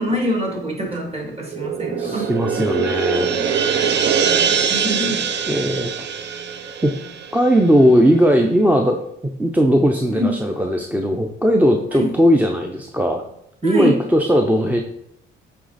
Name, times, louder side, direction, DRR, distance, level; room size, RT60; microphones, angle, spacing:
voice 1, 0.0-2.3 2.6-2.9 4.2-5.3 10.1-10.4 11.9-12.1 13.6-14.0, right 1 dB, 30° right, -1 dB, 2.3 m, -25 dB
sound 1, 1.4-8.0, right 7 dB, 60° right, 0.6 m, -23 dB
voice 2, 2.0-3.3 5.5-5.9 6.8-6.9 7.3-13.2 13.6-14.8, equal, 10° right, 2 dB, 0.5 m, -18 dB
8.0 x 3.4 x 4.0 m, 0.77 s
cardioid pair, 90°, 20 cm